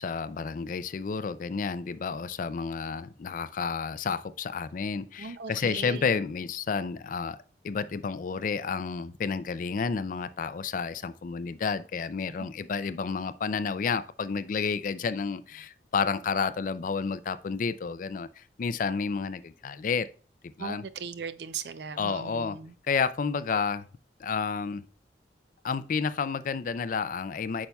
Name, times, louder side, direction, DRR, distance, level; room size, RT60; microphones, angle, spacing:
voice 1, 0.0-7.4 7.6-20.1 20.6-20.8 22.0-22.6 22.9-23.9 24.2-24.9 25.6-27.7, left 5 dB, 45° left, 0.4 m, -30 dB
voice 2, 5.2-6.1 20.6-22.7, right 6 dB, 65° right, 0.5 m, -38 dB
8.7 x 5.4 x 2.3 m
head